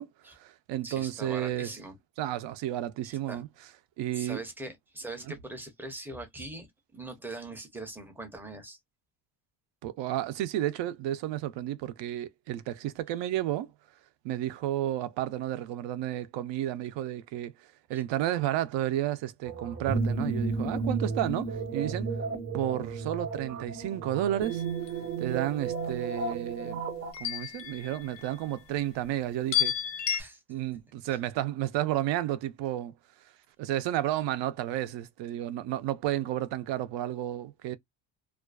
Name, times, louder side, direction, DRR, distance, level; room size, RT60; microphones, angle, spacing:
voice 1, 0.0-1.7 2.2-3.5 4.0-4.4 9.8-13.7 14.2-22.1 22.5-24.6 25.2-26.8 27.2-29.7 30.5-32.9 33.6-37.8, right 13 dB, 80° right, 0.5 m, -32 dB
voice 2, 0.8-2.0 3.0-3.4 4.1-8.8 17.9-18.0 27.4-27.5 30.2-30.4, right 2 dB, 5° right, 0.4 m, -42 dB
sound 1, 19.4-27.1, right 4 dB, 40° right, 0.7 m, -33 dB
sound 2, 24.4-25.0 27.1-28.5 29.5-30.2, left 10 dB, 85° left, 0.7 m, -32 dB
2.4 x 2.3 x 2.2 m
cardioid pair, 170°, 43 cm